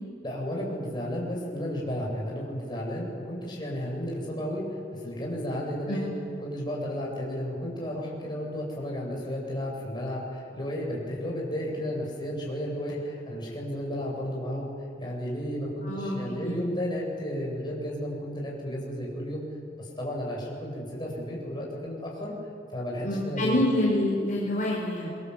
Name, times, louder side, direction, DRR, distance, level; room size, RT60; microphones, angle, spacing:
voice 1, 0.2-6.1 6.4-14.7 15.0-19.4 19.8-22.3 22.7-23.6, equal, 25° left, -3 dB, 7.8 m, -33 dB
voice 2, 15.8-16.6 23.0-25.1, left 1 dB, 45° left, -4 dB, 5.0 m, -27 dB
27.5 x 24.0 x 8.2 m, 2.4 s
head